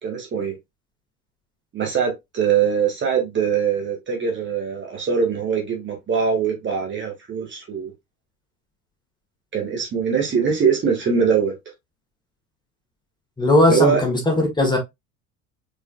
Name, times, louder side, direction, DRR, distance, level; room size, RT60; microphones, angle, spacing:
voice 1, 0.0-0.5 1.7-7.9 9.5-11.5 13.7-14.0, right 6 dB, 25° right, 1.7 m, -22 dB
voice 2, 13.4-14.8, left 1 dB, 10° left, 1.9 m, -18 dB
5.1 x 4.5 x 2.3 m
figure-of-eight pair, 70°, 42 cm